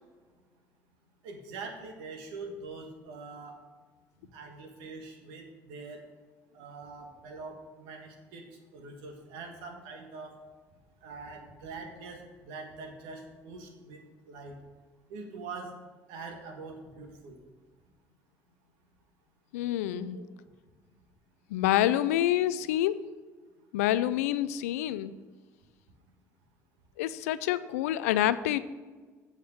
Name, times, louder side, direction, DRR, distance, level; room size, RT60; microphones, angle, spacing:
voice 1, 1.2-3.6 4.3-6.0 6.5-8.5 8.7-10.3 11.0-14.5 15.1-15.7 16.1-17.4 20.1-20.2, right 3 dB, 80° right, 4 dB, 1.4 m, -43 dB
voice 2, 19.5-20.2 21.5-23.0 23.7-25.1 27.0-28.6, left 13 dB, 85° left, 16 dB, 0.3 m, -27 dB
7.9 x 4.9 x 6.5 m, 1.4 s
hypercardioid pair, 60°, 8 cm